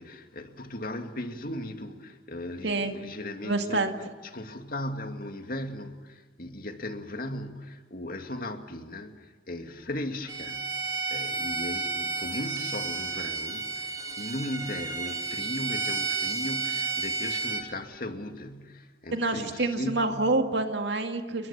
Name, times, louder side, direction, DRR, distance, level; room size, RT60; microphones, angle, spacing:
voice 1, 0.0-3.9 4.2-20.3, left 1 dB, 50° left, 2.4 m, -37 dB
voice 2, 2.6-2.9 3.4-3.9 19.1-21.5, right 2 dB, 65° right, 2.1 m, -27 dB
Bowed string instrument, 10.3-17.7, right 4 dB, 20° right, 2.6 m, -32 dB
29.5 x 23.0 x 7.3 m
head